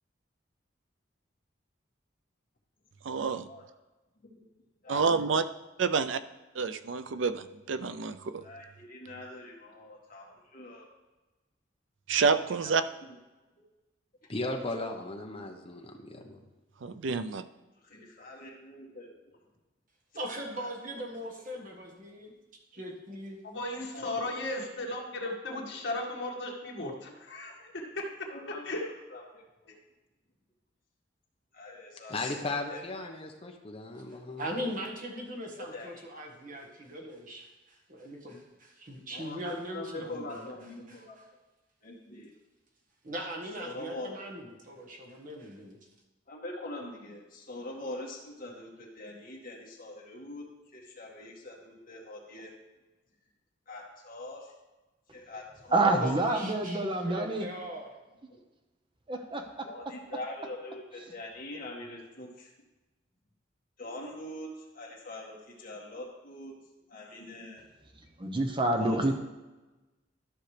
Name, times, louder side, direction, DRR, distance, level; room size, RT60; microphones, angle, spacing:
voice 1, 3.0-3.4 4.9-5.4 5.8-6.2 6.6-8.4 12.1-12.8 16.8-17.4, right 5 dB, 90° right, 12 dB, 0.5 m, -28 dB
voice 2, 8.4-10.8 12.6-12.8 15.9-16.2 17.8-19.1 20.6-20.7 23.9-24.2 28.3-28.6 29.1-29.8 31.5-32.3 32.7-32.8 35.6-36.0 39.1-41.2 41.8-42.3 43.6-44.2 46.3-50.4 50.7-52.5 53.7-54.5 55.1-56.0 56.8-56.9 58.3-58.4 59.6-62.5 63.8-64.5 64.7-66.5 66.9-67.6 68.8-69.1, left 2 dB, 50° left, -3 dB, 2.1 m, -43 dB
voice 3, 14.3-16.4 32.1-34.5, left 2 dB, 30° left, 3 dB, 1.0 m, -36 dB
voice 4, 20.1-22.3 22.7-23.4 34.1-40.5 40.9-41.2 43.0-45.8 55.8-57.9, equal, 45° right, 0 dB, 1.5 m, -40 dB
voice 5, 23.4-28.3 28.6-28.9 29.7-29.8, left 2 dB, 70° left, -2 dB, 1.9 m, -36 dB
voice 6, 55.7-57.4 59.1-59.6 68.2-69.1, right 2 dB, 25° right, 4 dB, 0.9 m, -27 dB
13.0 x 5.8 x 3.3 m, 1.1 s
head